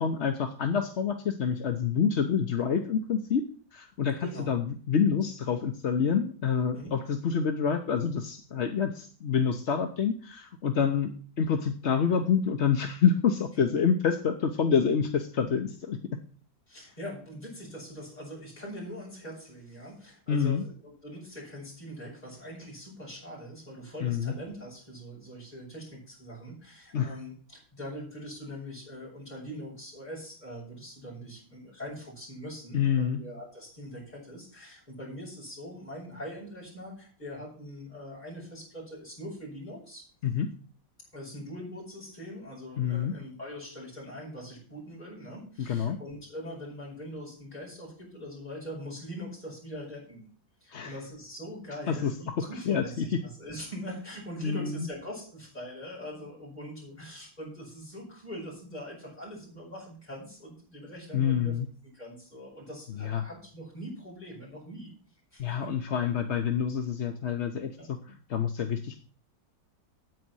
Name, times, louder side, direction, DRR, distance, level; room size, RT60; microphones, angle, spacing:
voice 1, 0.0-3.4 3.7-11.1 11.4-16.2 20.3-20.6 24.0-24.3 26.9-27.2 32.7-33.2 40.2-40.5 42.8-43.1 45.6-46.0 50.7-50.9 51.9-53.0 54.4-54.9 61.1-61.7 63.0-63.2 65.4-69.0, left 7 dB, 50° left, 5 dB, 0.9 m, -27 dB
voice 2, 4.2-4.5 6.7-6.9 16.7-40.1 41.1-50.2 50.6-61.5 61.9-64.9 65.3-65.7 67.8-67.9, equal, 20° left, -4 dB, 6.9 m, -42 dB
9.4 x 8.5 x 6.2 m, 0.41 s
omnidirectional pair, 2.0 m